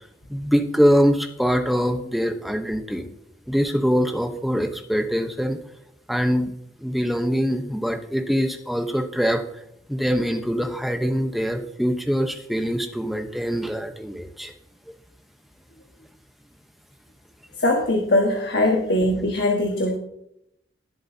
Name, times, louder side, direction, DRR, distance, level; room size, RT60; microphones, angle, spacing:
voice 1, 0.3-3.1 3.5-5.6 6.1-6.5 6.8-9.4 9.9-14.5, equal, ahead, 5 dB, 0.9 m, -23 dB
voice 2, 17.6-20.0, left 1 dB, 65° left, 1 dB, 1.5 m, -21 dB
19.5 x 7.8 x 2.8 m, 0.76 s
head